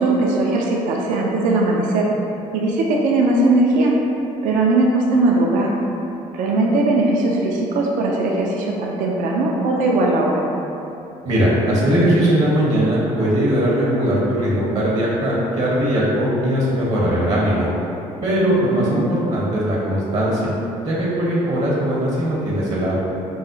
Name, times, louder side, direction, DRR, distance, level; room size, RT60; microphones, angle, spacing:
voice 1, 0.0-2.1 2.5-4.0 4.4-5.7 6.3-10.4 18.7-19.1, right 2 dB, 70° right, -2 dB, 0.4 m, -19 dB
voice 2, 11.2-17.7 18.2-20.5 20.8-23.0, equal, 50° right, -5 dB, 0.8 m, -19 dB
4.7 x 2.0 x 2.6 m, 2.8 s
supercardioid pair, 80°, 14 cm